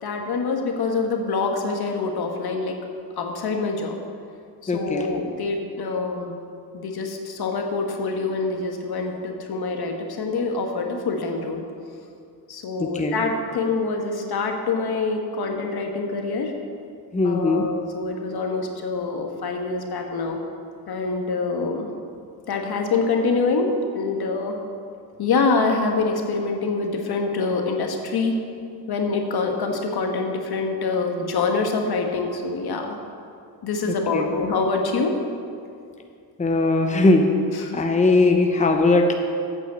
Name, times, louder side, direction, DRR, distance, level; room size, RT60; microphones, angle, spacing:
voice 1, 0.0-2.8 3.2-4.0 4.6-6.4 6.7-11.6 12.5-16.5 17.2-20.4 20.9-21.9 22.5-24.6 25.2-28.3 28.9-33.0 33.6-35.1 37.7-37.8, left 4 dB, 60° left, 3 dB, 1.5 m, -25 dB
voice 2, 4.7-5.1 12.8-13.2 17.1-17.7 33.9-34.3 36.4-37.3 37.7-39.1, left 2 dB, 15° left, 3 dB, 0.9 m, -20 dB
8.6 x 6.2 x 8.1 m, 2.4 s
cardioid pair, 75°, 42 cm